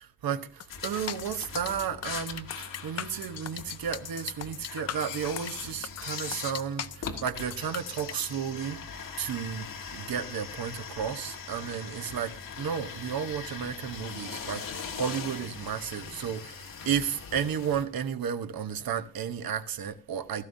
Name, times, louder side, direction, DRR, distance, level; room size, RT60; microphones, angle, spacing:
voice 1, 0.2-8.8 9.2-12.3 12.6-20.4, right 8 dB, 80° right, 1.0 m, -33 dB
sound 1, 0.6-8.1, left 9 dB, 50° left, 0.5 m, -39 dB
sound 2, 0.7-17.8, left 5 dB, 65° left, 1.7 m, -41 dB
16.5 x 14.0 x 2.7 m
wide cardioid pair, 175°, 35 cm